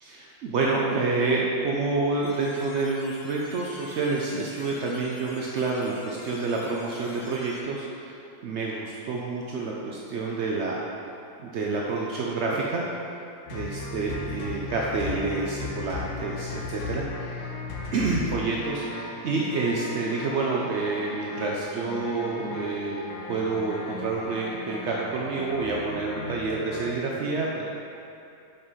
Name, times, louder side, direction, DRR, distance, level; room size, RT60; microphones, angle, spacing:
voice 1, 0.1-8.2 8.4-10.8 11.4-12.8 13.5-17.5 17.9-23.0 23.3-27.7, right 3 dB, 80° right, -3 dB, 0.6 m, -28 dB
sound 1, 2.2-7.6, left 1 dB, 60° left, 1.4 m, -47 dB
sound 2, 13.5-27.0, left 3 dB, 80° left, 1.4 m, -36 dB
5.5 x 5.4 x 4.1 m, 2.7 s
omnidirectional pair, 1.8 m